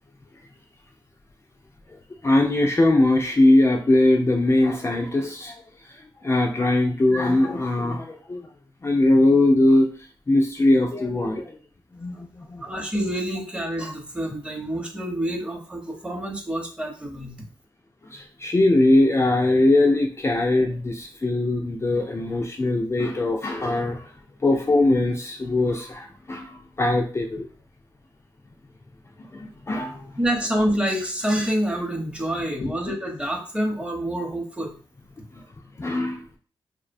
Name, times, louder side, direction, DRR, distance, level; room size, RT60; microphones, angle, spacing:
voice 1, 2.2-5.6 5.8-8.5 8.8-9.9 10.3-11.6 12.0-12.6 18.1-24.1 24.4-27.5 29.2-30.1 32.6-32.7 35.8-36.2, left 2 dB, 25° left, 1 dB, 0.3 m, -21 dB
voice 2, 12.6-17.3 30.2-34.7, equal, 10° right, 0 dB, 0.7 m, -27 dB
2.5 x 2.1 x 2.5 m, 0.42 s
cardioid pair, 50°, 10 cm